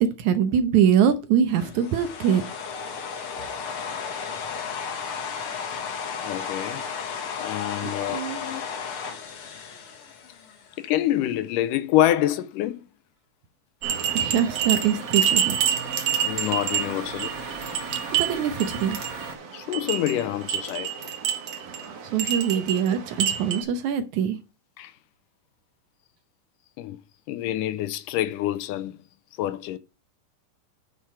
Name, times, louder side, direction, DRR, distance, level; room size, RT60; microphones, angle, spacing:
voice 1, 0.0-2.4 7.8-8.4 14.1-15.6 18.2-19.1 22.0-24.4, right 8 dB, 70° right, 2.0 m, -23 dB
sound 1, 1.6-10.8, left 6 dB, 55° left, 1.8 m, -34 dB
voice 2, 6.2-6.8 7.4-8.6 10.8-12.9 16.2-17.3 19.5-20.9 24.8-24.9 26.8-27.0 27.3-29.0 29.4-29.8, left 13 dB, 80° left, 2.2 m, -26 dB
sound 2, 13.8-19.3, right 4 dB, 40° right, 1.3 m, -37 dB
sound 3, 13.8-23.6, right 9 dB, 55° right, 2.5 m, -28 dB
9.4 x 5.9 x 4.8 m
omnidirectional pair, 3.8 m